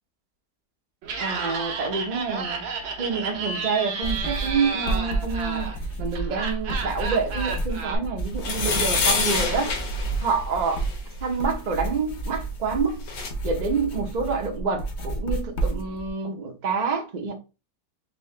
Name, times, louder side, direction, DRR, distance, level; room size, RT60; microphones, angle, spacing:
Laughter, 1.0-8.0, right 4 dB, 85° right, 1.6 m, -32 dB
voice 1, 1.2-2.6 3.0-9.8 10.2-10.8 11.2-13.1 13.4-17.3, right 5 dB, 60° right, 0.4 m, -27 dB
sound 1, 4.0-16.1, right 2 dB, 55° left, 0.8 m, -31 dB
sound 2, 8.4-11.0 12.6-12.7 12.9-13.3, left 4 dB, 85° left, 1.8 m, -26 dB
4.2 x 2.8 x 3.2 m
omnidirectional pair, 2.0 m